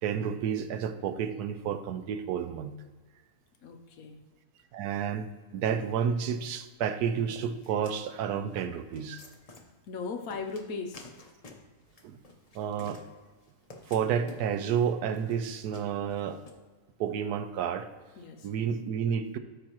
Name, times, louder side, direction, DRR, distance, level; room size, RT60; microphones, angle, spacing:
voice 1, 0.0-2.7 4.7-5.3 5.5-9.2 12.0-12.2 12.5-13.0 13.9-16.4 17.0-17.9 18.4-19.4, right 8 dB, 80° right, 10 dB, 1.1 m, -30 dB
voice 2, 3.6-4.2 9.9-11.1 18.2-18.5, left 4 dB, 65° left, 5 dB, 1.1 m, -38 dB
sound 1, 7.3-16.5, left 3 dB, 30° left, 0.7 m, -52 dB
13.0 x 4.8 x 3.0 m, 1.3 s
omnidirectional pair, 1.7 m